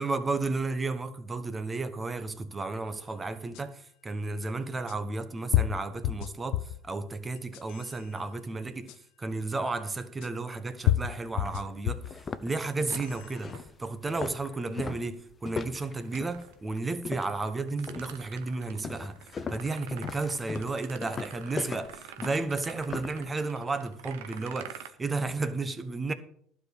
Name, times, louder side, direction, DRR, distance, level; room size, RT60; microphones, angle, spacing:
voice 1, 0.0-19.2 19.5-26.1, right 3 dB, 20° right, 1.1 m, -33 dB
sound 1, 3.5-3.6 4.9-5.0 5.5-6.8 7.4-7.9 8.9-9.0 10.2-10.3 10.9-12.2 12.7-13.2, left 14 dB, 70° left, 0.5 m, -29 dB
sound 2, 10.9-11.0 11.4-11.6 12.0-17.5 17.9-18.3 18.8-23.2, left 5 dB, 25° left, 0.7 m, -39 dB
sound 3, 12.9-14.0 15.8-16.6 17.4-24.9, right 10 dB, 85° right, 1.0 m, -48 dB
12.0 x 5.1 x 8.1 m
supercardioid pair, 115°, 0 cm